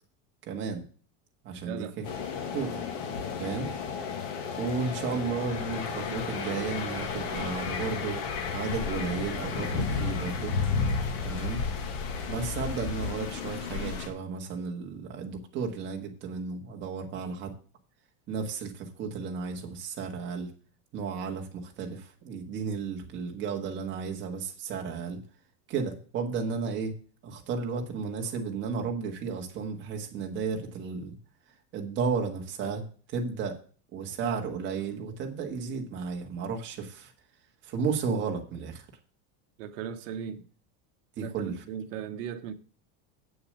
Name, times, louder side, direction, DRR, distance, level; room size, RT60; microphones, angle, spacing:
voice 1, 0.4-0.8 1.4-2.0 2.5-2.8 3.4-3.7 4.6-8.2 8.5-10.6 11.2-11.6 12.3-17.5 18.3-20.5 20.9-25.2 25.7-26.9 27.2-31.2 31.7-32.9 33.1-33.6 33.9-37.1 37.6-38.8 41.2-41.6, right 5 dB, 25° right, 1.6 m, -33 dB
voice 2, 1.6-2.0 4.8-5.5 39.6-40.4 41.2-42.5, right 8 dB, 55° right, 1.3 m, -38 dB
sound 1, 2.0-14.1, left 5 dB, 55° left, 1.9 m, -32 dB
8.2 x 6.9 x 6.6 m
supercardioid pair, 175°, 45 cm